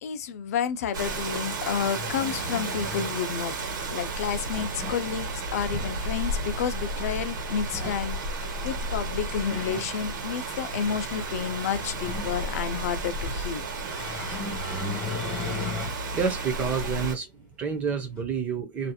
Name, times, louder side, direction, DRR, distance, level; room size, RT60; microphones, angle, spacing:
voice 1, 0.0-3.5 3.9-13.7, left 7 dB, 50° left, 0.4 m, -30 dB
sound 1, 0.7-0.8 1.6-3.3 4.3-5.1 5.5-6.0 7.6-8.1 9.0-9.9 10.5-12.7 13.9-16.0 16.5-16.6 18.2-18.3, left 3 dB, 10° left, 1.4 m, -37 dB
Rain, 0.9-17.1, right 2 dB, 75° right, 1.2 m, -33 dB
voice 2, 16.1-18.9, right 6 dB, 15° right, 0.4 m, -29 dB
2.7 x 2.5 x 2.2 m
supercardioid pair, 175°, 11 cm